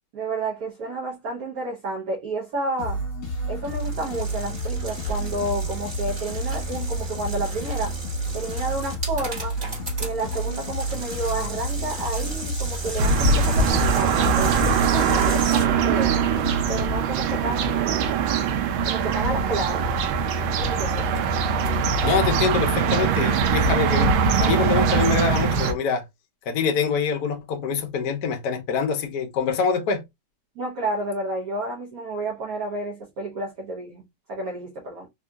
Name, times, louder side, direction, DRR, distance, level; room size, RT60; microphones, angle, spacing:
voice 1, 0.1-3.0 3.5-8.0 8.3-9.6 10.0-16.1 16.7-18.1 18.8-19.9 20.4-21.1 30.6-35.1, right 2 dB, 60° right, 1.0 m, -30 dB
sound 1, 2.8-17.4, right 1 dB, 45° left, 1.7 m, -30 dB
sound 2, 3.6-15.6, right 2 dB, 20° right, 1.5 m, -36 dB
sound 3, 13.0-25.7, right 5 dB, 75° right, 1.3 m, -22 dB
voice 2, 22.0-26.0 26.5-30.0, left 5 dB, 65° left, 1.0 m, -25 dB
3.7 x 2.7 x 2.3 m
omnidirectional pair, 2.3 m